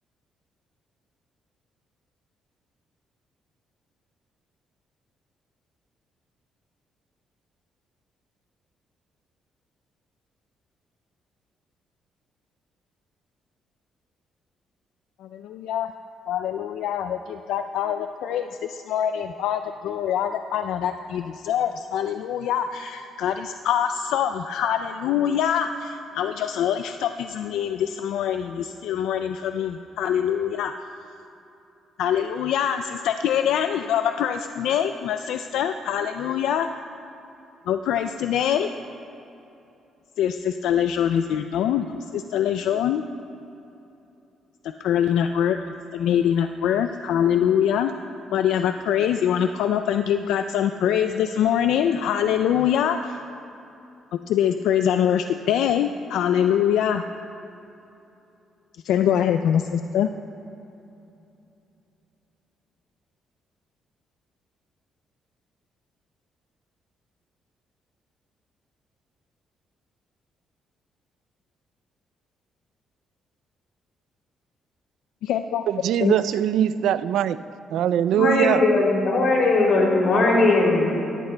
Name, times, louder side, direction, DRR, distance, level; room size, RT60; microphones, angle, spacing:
voice 1, 15.2-15.9 16.3-30.7 32.0-36.7 37.7-38.7 40.2-43.0 44.6-47.9 48.3-53.2 54.3-57.0 58.8-60.1 75.2-75.6 76.0-76.2, left 9 dB, 85° left, 7 dB, 0.3 m, -24 dB
voice 2, 75.7-77.4 77.7-78.6, right 11 dB, 80° right, 14 dB, 0.3 m, -22 dB
voice 3, 78.1-81.2, left 2 dB, 60° left, -1 dB, 2.8 m, -19 dB
18.5 x 14.5 x 2.2 m, 2.8 s
cardioid pair, 90°, 0 cm